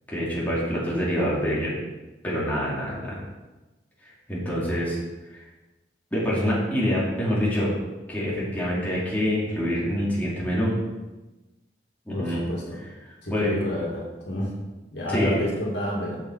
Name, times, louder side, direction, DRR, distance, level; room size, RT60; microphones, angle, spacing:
voice 1, 0.1-1.7 2.2-3.2 4.3-5.0 5.3-5.4 6.1-7.7 8.1-10.8 12.1-12.4 13.0-13.6 15.1-15.4, equal, 10° left, -7 dB, 2.3 m, -26 dB
voice 2, 12.1-12.8 13.2-14.5 14.9-16.2, left 1 dB, 70° left, -3 dB, 2.1 m, -29 dB
7.2 x 7.1 x 4.4 m, 1.1 s
head